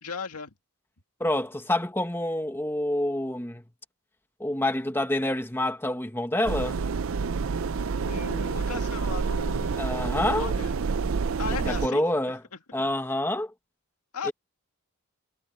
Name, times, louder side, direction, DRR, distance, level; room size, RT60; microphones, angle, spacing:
voice 1, 0.0-0.5 8.0-9.8 10.2-10.7 11.4-12.0 14.1-14.3, left 5 dB, 85° left, 2.1 m, -36 dB
voice 2, 1.2-3.6 4.4-6.8 9.8-10.5 11.5-12.4 12.7-13.5 14.2-14.3, left 1 dB, 10° left, 1.5 m, -27 dB
sound 1, 6.4-11.9, right 5 dB, 65° right, 0.5 m, -28 dB
head